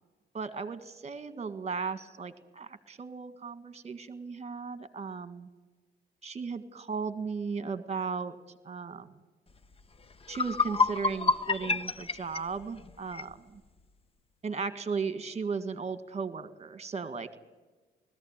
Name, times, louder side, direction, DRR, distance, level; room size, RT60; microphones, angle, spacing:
voice 1, 0.3-5.5 6.2-8.4 8.6-9.1 10.3-13.6 14.4-17.4, right 5 dB, 35° right, 11 dB, 1.8 m, -36 dB
sound 1, 9.8-9.9 10.2-13.3, left 4 dB, 30° left, 0.9 m, -29 dB
20.5 x 15.0 x 9.0 m, 1.2 s
cardioid pair, 90°, 20 cm